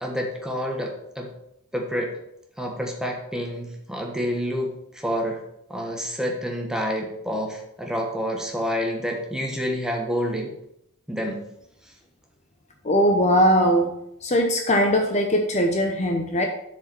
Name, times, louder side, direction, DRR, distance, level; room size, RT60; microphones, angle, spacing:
voice 1, 0.0-1.3 1.7-2.1 2.6-5.4 5.7-10.5 11.1-11.4, equal, 5° right, 0 dB, 1.3 m, -28 dB
voice 2, 12.8-14.0 14.2-16.5, equal, 30° left, 3 dB, 0.7 m, -20 dB
7.2 x 4.9 x 6.0 m, 0.78 s
head